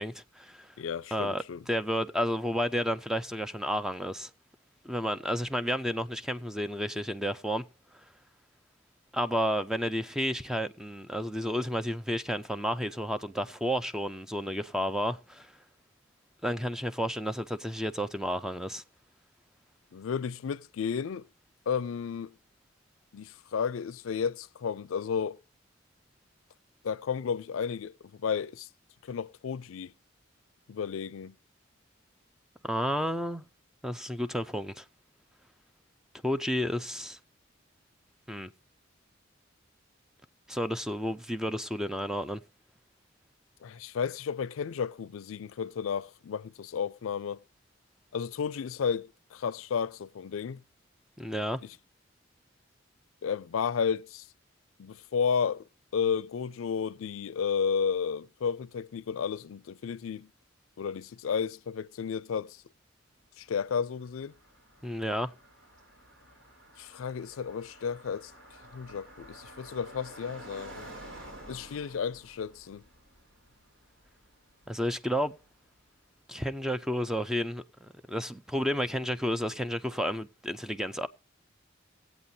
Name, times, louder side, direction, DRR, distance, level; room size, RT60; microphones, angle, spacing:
voice 1, 0.0-0.7 1.1-4.3 4.8-7.6 9.1-15.5 16.4-18.8 32.6-33.4 33.8-34.8 36.2-37.2 38.3-38.5 40.5-42.4 51.2-51.6 64.8-65.3 74.7-75.4 76.3-77.6 78.1-81.1, equal, 5° right, 0.4 m, -31 dB
voice 2, 0.8-1.6 19.9-21.3 21.7-22.3 23.1-25.4 26.8-28.7 29.0-29.9 30.7-31.3 43.6-47.4 48.1-50.6 51.6-51.8 53.2-54.2 54.8-55.7 55.9-60.3 60.8-62.6 63.4-64.3 66.8-68.3 68.7-70.9 71.5-72.8, left 6 dB, 85° left, 0.4 m, -32 dB
Car passing by, 63.4-75.5, right 1 dB, 65° right, 4.2 m, -51 dB
19.5 x 8.1 x 2.7 m
head